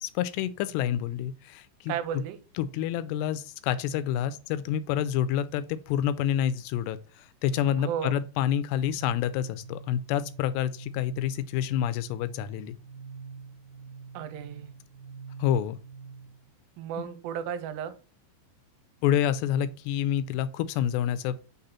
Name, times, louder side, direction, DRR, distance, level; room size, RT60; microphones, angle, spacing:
voice 1, 0.0-2.2 2.6-12.8 15.4-15.8 17.0-17.1 19.0-21.4, left 10 dB, 85° left, 2.7 m, -28 dB
voice 2, 1.9-2.4 7.7-8.2 14.1-14.7 16.8-17.9, right 9 dB, 90° right, 2.8 m, -34 dB
sound 1, 8.9-16.5, right 5 dB, 60° right, 1.9 m, -46 dB
6.1 x 3.9 x 4.2 m
omnidirectional pair, 4.9 m